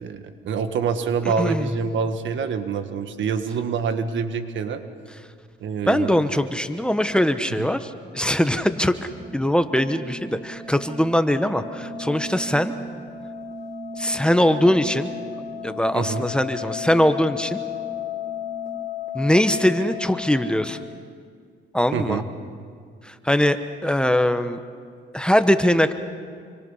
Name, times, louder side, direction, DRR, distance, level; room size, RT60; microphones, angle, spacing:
voice 1, 0.0-4.8 5.6-6.2 7.6-7.7 15.9-16.3 21.9-22.2, right 6 dB, 70° right, 8 dB, 1.6 m, -26 dB
voice 2, 1.4-1.7 5.9-12.7 14.0-15.1 15.6-17.6 19.1-20.8 21.7-22.2 23.0-24.6 25.1-25.9, equal, 5° left, 9 dB, 1.1 m, -21 dB
sound 1, 8.8-20.8, left 5 dB, 40° left, 4.9 m, -35 dB
28.5 x 24.0 x 5.7 m, 2.1 s
cardioid pair, 90°, 20 cm